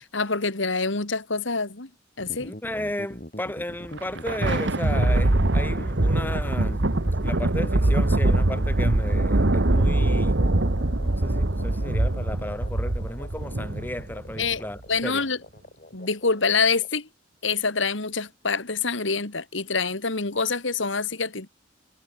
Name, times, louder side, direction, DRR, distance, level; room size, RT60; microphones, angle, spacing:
voice 1, 0.1-1.9 2.2-2.5 14.4-14.6 14.9-15.4 15.9-17.1 17.4-21.5, left 4 dB, 75° left, 2.5 m, -26 dB
sound 1, 2.2-17.0, left 1 dB, 45° left, 4.5 m, -43 dB
voice 2, 2.4-6.8 7.2-10.4 11.0-15.2, left 1 dB, 10° left, 1.8 m, -34 dB
Thunder, 3.8-14.6, right 2 dB, 65° right, 1.4 m, -23 dB
head